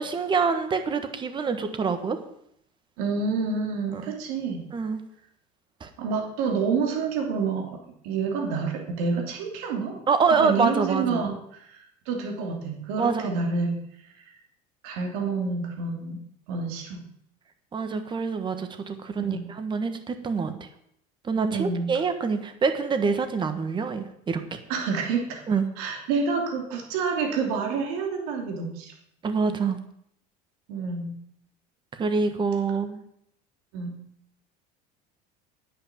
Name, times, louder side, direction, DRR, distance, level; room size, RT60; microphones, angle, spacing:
voice 1, 0.0-2.2 3.9-4.0 4.7-5.0 5.8-5.9 10.1-11.3 13.0-13.4 17.7-20.7 21.2-24.6 25.5-25.7 29.2-29.8 31.9-33.0, right 5 dB, 25° right, 8 dB, 1.4 m, -26 dB
voice 2, 3.0-4.6 6.0-7.7 8.0-10.0 10.3-11.7 12.1-13.8 14.8-16.2 16.5-17.0 19.2-19.5 21.5-21.9 24.7-25.4 25.8-28.9 30.7-31.2 33.7-34.0, right 4 dB, 85° right, 3 dB, 2.9 m, -28 dB
9.9 x 8.9 x 7.2 m, 0.71 s
cardioid pair, 135°, 19 cm